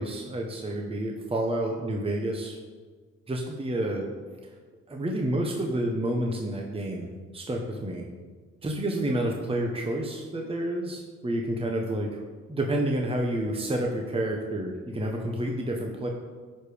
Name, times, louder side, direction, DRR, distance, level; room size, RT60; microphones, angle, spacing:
voice 1, 0.0-2.6 3.3-4.1 4.9-8.1 8.6-12.2 12.5-16.1, right 1 dB, 20° right, 1 dB, 1.1 m, -29 dB
10.0 x 5.0 x 5.1 m, 1.5 s
cardioid pair, 90°, 30 cm